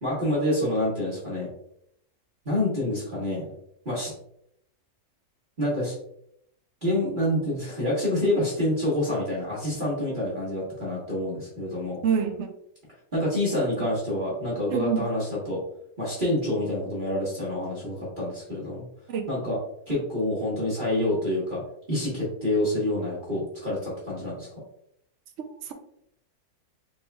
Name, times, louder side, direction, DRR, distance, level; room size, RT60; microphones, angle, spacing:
voice 1, 0.0-1.5 2.4-3.5 3.8-4.1 5.6-6.0 6.8-12.0 13.1-15.6 16.0-18.8 19.3-19.6 19.9-21.6 21.9-24.5, left 1 dB, 35° right, 1.4 m, -27 dB
voice 2, 12.0-12.5 14.7-15.0 19.1-19.2 25.4-25.7, right 7 dB, 60° right, 0.8 m, -27 dB
4.3 x 4.2 x 2.3 m
omnidirectional pair, 1.6 m